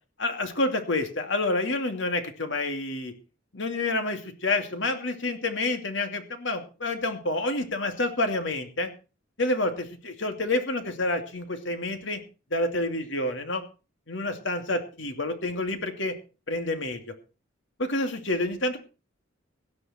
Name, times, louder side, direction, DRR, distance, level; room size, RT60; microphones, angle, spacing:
voice 1, 0.2-3.1 3.5-8.9 9.4-12.2 12.5-13.6 14.1-16.1 16.5-17.1 17.8-18.8, left 2 dB, 65° left, 6 dB, 2.6 m, -28 dB
17.5 x 11.5 x 4.4 m, 0.33 s
head